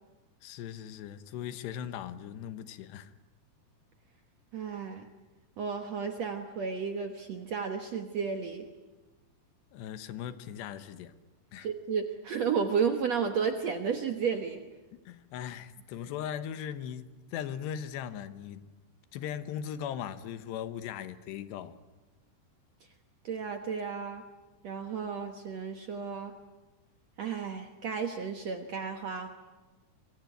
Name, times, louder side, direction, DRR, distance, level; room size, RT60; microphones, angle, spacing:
voice 1, 0.4-3.1 9.7-11.1 11.5-11.7 15.1-18.7 19.1-21.8, left 9 dB, 80° left, 3.3 m, -39 dB
voice 2, 4.5-5.0 5.6-8.7 11.6-14.6 23.2-24.2 24.6-26.3 27.2-29.3, right 6 dB, 65° right, 1.6 m, -32 dB
26.0 x 23.5 x 9.2 m
omnidirectional pair, 5.0 m